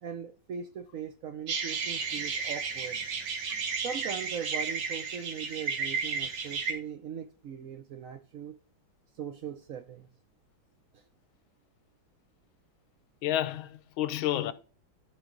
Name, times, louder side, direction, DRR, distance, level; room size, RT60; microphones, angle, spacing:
voice 1, 0.0-3.0 3.8-8.6 9.2-10.1, right 7 dB, 70° right, 0.7 m, -40 dB
sound 1, 1.5-6.7, right 5 dB, 90° right, 2.4 m, -33 dB
voice 2, 13.2-14.5, left 13 dB, 90° left, 1.5 m, -30 dB
13.0 x 4.9 x 3.8 m
omnidirectional pair, 2.2 m